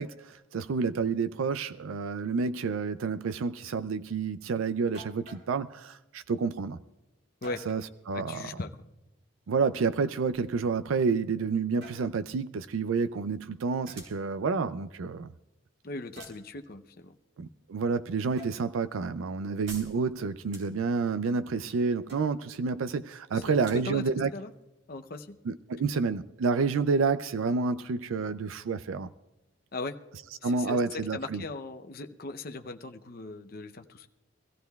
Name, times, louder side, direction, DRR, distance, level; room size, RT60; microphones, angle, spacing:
voice 1, 0.0-6.8 7.7-7.8 8.1-8.6 9.5-15.3 17.4-24.3 25.5-29.1 30.4-31.4, right 4 dB, 85° right, 0.4 m, -29 dB
sound 1, 4.9-5.5 7.4-7.9 9.6-11.0 11.6-12.1 13.9-14.1 16.2-16.5 18.4-18.6 22.1-22.6, equal, 50° right, 2.0 m, -50 dB
voice 2, 8.1-8.7 15.8-17.2 23.3-24.0 24.3-24.5 24.9-25.4 29.7-30.0 30.4-30.8 31.1-34.1, left 2 dB, 45° left, 0.6 m, -38 dB
sound 2, 13.7-25.8, right 3 dB, 70° right, 3.5 m, -54 dB
24.5 x 15.0 x 2.3 m
head